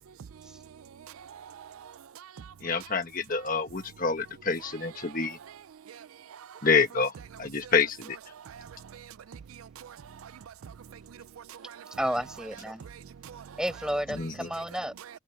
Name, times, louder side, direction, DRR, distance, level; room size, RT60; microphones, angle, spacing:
voice 1, 1.0-2.5 5.0-5.1 5.9-6.6 7.6-7.7 8.3-12.0 12.8-13.6, right 8 dB, 90° right, 0.4 m, -47 dB
voice 2, 2.6-5.4 6.6-7.1 7.4-8.2 14.1-14.5, left 4 dB, 40° left, 1.5 m, -27 dB
voice 3, 12.0-12.8 13.6-14.9, equal, 5° right, 5.0 m, -31 dB
head